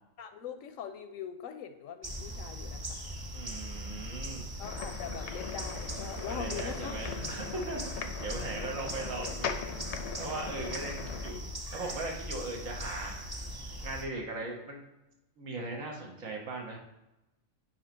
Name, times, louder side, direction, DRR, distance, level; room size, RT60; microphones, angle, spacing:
voice 1, 0.2-3.0 4.6-6.9, left 7 dB, 80° left, 8 dB, 1.0 m, -42 dB
sound 1, 2.0-14.1, equal, 25° right, 0.5 m, -40 dB
voice 2, 3.3-4.5 6.2-11.4 11.7-13.1 13.8-14.8 15.4-16.8, right 2 dB, 80° right, 0 dB, 1.6 m, -39 dB
sound 2, 4.6-11.3, left 7 dB, 65° left, 0.8 m, -40 dB
7.6 x 3.0 x 5.1 m, 0.94 s
omnidirectional pair, 1.4 m